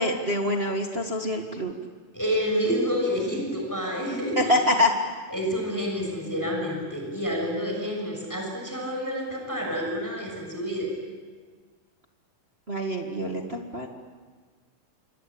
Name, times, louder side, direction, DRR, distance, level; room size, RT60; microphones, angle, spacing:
voice 1, 0.0-1.7 4.3-4.9 12.7-13.9, left 1 dB, 35° right, 2 dB, 1.0 m, -25 dB
voice 2, 2.1-4.5 5.3-10.9, equal, 5° left, 0 dB, 6.3 m, -28 dB
27.5 x 25.0 x 8.7 m, 1.5 s
omnidirectional pair, 4.2 m